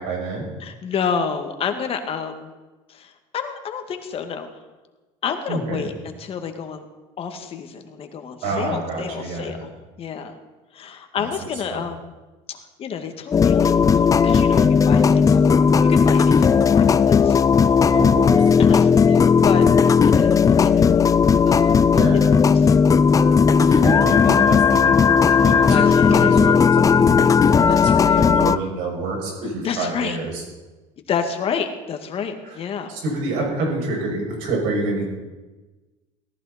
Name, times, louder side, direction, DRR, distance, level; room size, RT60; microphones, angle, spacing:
voice 1, 0.0-0.5 5.5-5.9 8.4-9.7 11.1-11.2 11.7-11.8 17.9-18.6 21.9-22.3 23.6-30.4 32.4-32.6 32.9-35.0, right 2 dB, 80° right, -1 dB, 7.0 m, -27 dB
voice 2, 0.6-2.5 2.9-4.5 5.2-6.8 7.2-9.7 10.0-10.3 10.7-12.1 12.5-17.4 18.6-21.1 21.5-22.2 22.5-22.8 25.6-26.7 27.7-28.2 29.6-30.2 31.1-32.9, left 6 dB, 45° left, 6 dB, 1.9 m, -30 dB
sound 1, 13.3-28.6, left 6 dB, 25° left, 0.5 m, -15 dB
18.0 x 15.0 x 4.3 m, 1.2 s
supercardioid pair, 105°, 13 cm